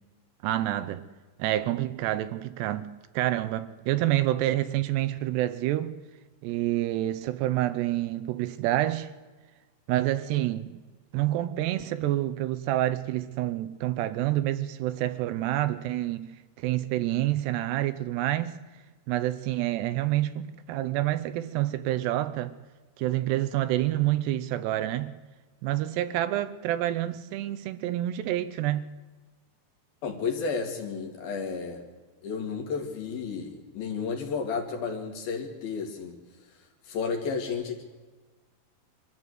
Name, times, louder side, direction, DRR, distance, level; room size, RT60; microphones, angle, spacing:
voice 1, 0.4-1.0 1.4-2.9 3.1-5.9 6.4-9.1 9.9-10.8 11.1-16.3 16.6-18.6 19.1-22.6 23.0-25.1 25.6-28.9, right 14 dB, 80° right, 2.7 m, -28 dB
voice 2, 30.0-31.8 32.2-36.2 36.8-37.8, left 5 dB, 60° left, 3.9 m, -32 dB
24.5 x 14.0 x 8.1 m
omnidirectional pair, 5.0 m